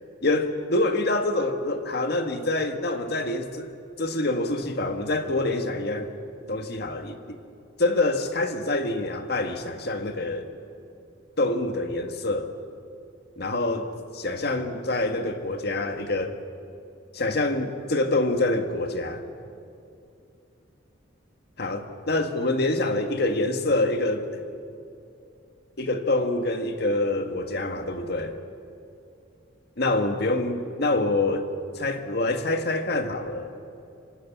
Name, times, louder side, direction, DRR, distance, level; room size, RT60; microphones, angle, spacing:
voice 1, 0.2-3.7 4.0-6.1 6.5-7.4 7.8-10.5 11.4-12.5 13.4-13.9 14.1-16.4 17.1-19.2 21.6-24.3 25.8-28.4 29.8-31.5 31.8-33.5, left 2 dB, 55° left, 7 dB, 1.7 m, -26 dB
26.0 x 18.0 x 8.5 m, 2.6 s
head